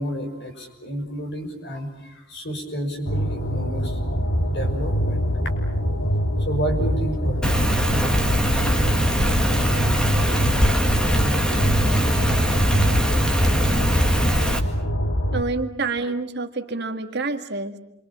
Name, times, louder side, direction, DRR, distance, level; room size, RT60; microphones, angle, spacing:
voice 1, 0.0-4.0 4.4-5.3 6.4-7.6, right 1 dB, 55° left, 4 dB, 6.0 m, -30 dB
sound 1, 3.0-15.4, equal, 80° left, 2.3 m, -24 dB
Rain, 7.4-14.6, equal, 5° left, 2.1 m, -22 dB
voice 2, 15.3-17.8, right 3 dB, 55° right, 6 dB, 1.8 m, -27 dB
28.5 x 25.0 x 7.4 m, 0.85 s
head